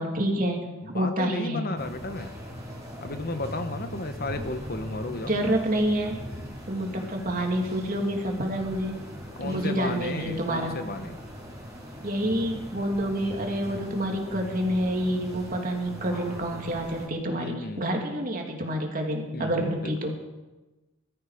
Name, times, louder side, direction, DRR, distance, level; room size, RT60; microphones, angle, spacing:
voice 1, 0.0-0.6 0.9-1.7 5.3-6.2 6.7-9.0 9.4-10.7 12.0-20.1, right 1 dB, 40° right, 1 dB, 2.7 m, -28 dB
voice 2, 0.8-2.3 3.0-5.3 9.4-11.2 17.3-17.9 19.3-20.1, left 2 dB, 45° left, 8 dB, 1.1 m, -34 dB
sound 1, 1.7-17.1, equal, 15° right, 4.4 m, -40 dB
20.5 x 13.5 x 5.0 m, 1.1 s
head